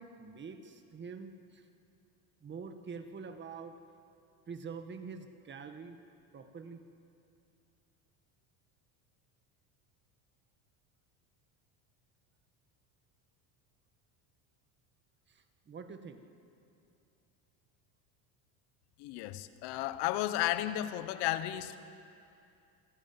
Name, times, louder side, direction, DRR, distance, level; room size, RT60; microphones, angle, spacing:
voice 1, 0.0-1.7 2.4-3.8 4.5-6.0 6.3-6.8 15.3-16.2, right 5 dB, 25° right, 7 dB, 1.8 m, -46 dB
voice 2, 19.0-21.8, left 14 dB, 65° left, 13 dB, 1.3 m, -33 dB
26.5 x 15.0 x 9.0 m, 2.6 s
supercardioid pair, 125°, 42 cm